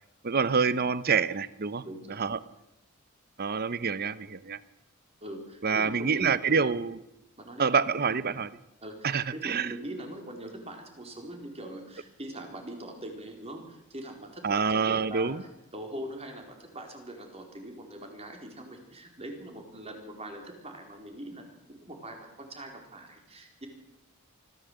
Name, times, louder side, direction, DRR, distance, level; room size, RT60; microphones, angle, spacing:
voice 1, 0.2-1.8 2.1-2.4 3.4-4.6 5.6-7.0 7.6-8.5 9.0-9.7 14.4-15.4, right 5 dB, 45° right, 16 dB, 0.8 m, -27 dB
voice 2, 1.8-2.2 5.2-6.6 7.4-7.7 8.8-23.7, right 1 dB, 30° right, 3 dB, 4.3 m, -42 dB
24.5 x 15.0 x 8.1 m, 0.90 s
head